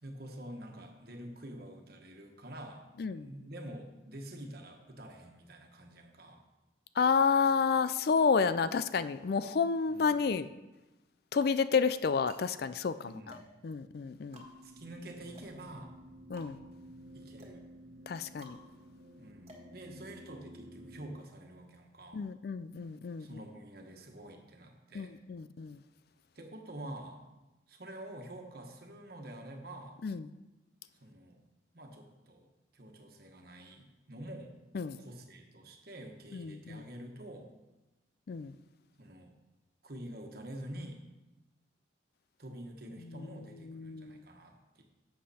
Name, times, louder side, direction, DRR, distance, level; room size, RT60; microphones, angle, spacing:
voice 1, 0.0-6.4 9.9-10.2 13.0-13.4 14.6-16.0 17.1-17.6 19.2-22.3 23.2-25.1 26.3-27.3 27.7-30.0 31.0-31.4 31.7-34.6 35.0-37.5 39.0-39.3 39.8-41.0 42.4-44.8, right 1 dB, 50° right, 3 dB, 1.4 m, -47 dB
voice 2, 7.0-10.5 11.3-13.4 13.6-14.4 16.3-16.6 18.1-18.6 22.1-23.4 24.9-25.8 30.0-30.3 34.7-35.0 36.3-36.8 38.3-38.6 43.1-43.3 43.6-44.2, left 5 dB, 55° left, 13 dB, 0.4 m, -30 dB
Tick Tock Noise, 10.6-11.0 11.7-20.5, right 1 dB, 35° right, 1.6 m, -58 dB
sound 1, 14.3-21.2, equal, 90° right, 1.3 m, -53 dB
11.5 x 7.6 x 4.3 m, 1.1 s
head